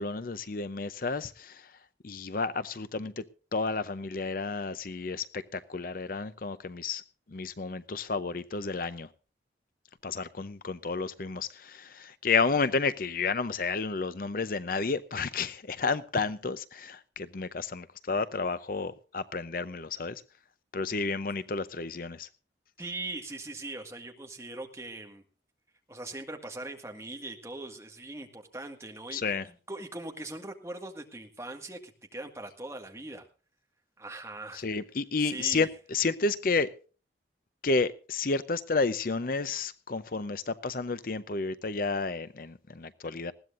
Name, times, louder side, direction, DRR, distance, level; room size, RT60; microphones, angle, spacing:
voice 1, 0.0-1.7 2.0-3.2 3.5-7.0 7.3-9.1 10.0-20.2 20.7-22.3 29.1-29.4 34.5-36.7 37.6-43.3, left 4 dB, 50° left, 0.6 m, -31 dB
voice 2, 22.8-25.2 25.9-33.3 34.0-34.7 35.2-35.7, right 2 dB, 15° right, 1.8 m, -41 dB
20.0 x 15.5 x 2.5 m
head